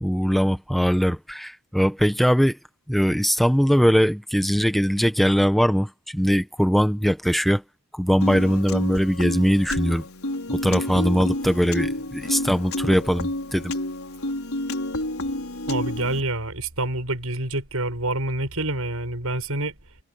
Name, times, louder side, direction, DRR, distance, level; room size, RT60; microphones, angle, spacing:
voice 1, 0.0-2.6 2.9-7.6 7.9-10.0 10.5-13.7, equal, ahead, 1.2 m, -21 dB
Piano, 8.2-16.2, left 1 dB, 85° left, 5.2 m, -30 dB
voice 2, 15.7-19.8, right 2 dB, 85° right, 6.8 m, -27 dB
head